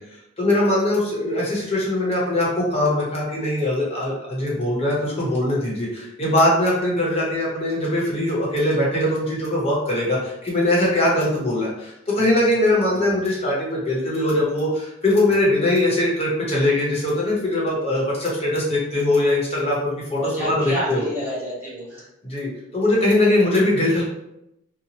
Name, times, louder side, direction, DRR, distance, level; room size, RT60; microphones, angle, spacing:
voice 1, 0.4-21.0 22.2-24.0, left 1 dB, 30° left, -5 dB, 0.9 m, -21 dB
voice 2, 20.2-22.1, equal, 10° right, -9 dB, 1.2 m, -29 dB
2.8 x 2.1 x 2.9 m, 0.85 s
head